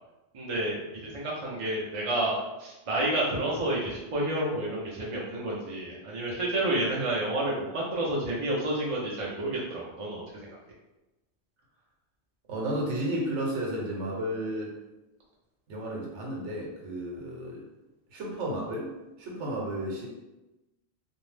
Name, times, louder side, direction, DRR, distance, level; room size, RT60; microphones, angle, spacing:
voice 1, 0.3-10.5, right 1 dB, 45° right, -4 dB, 0.4 m, -30 dB
voice 2, 12.5-14.7 15.7-17.7 18.1-20.1, right 1 dB, 85° right, -2 dB, 1.0 m, -33 dB
2.6 x 2.0 x 3.2 m, 1.0 s
omnidirectional pair, 1.2 m